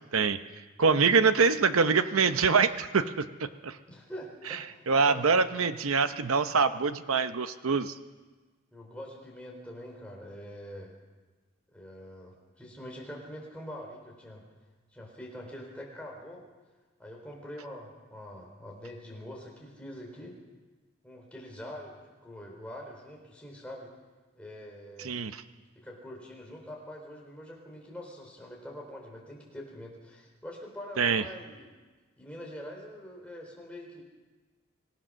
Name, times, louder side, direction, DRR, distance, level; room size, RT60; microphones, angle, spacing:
voice 1, 0.8-3.8 4.9-7.9 25.0-25.4 31.0-31.2, right 5 dB, 85° right, 11 dB, 0.8 m, -25 dB
voice 2, 3.9-5.6 8.7-10.9 11.7-14.4 14.9-16.4 17.0-20.4 21.0-23.9 24.3-25.2 25.8-31.7 32.2-34.0, equal, 5° left, -2 dB, 4.0 m, -44 dB
25.5 x 16.5 x 6.4 m, 1.3 s
head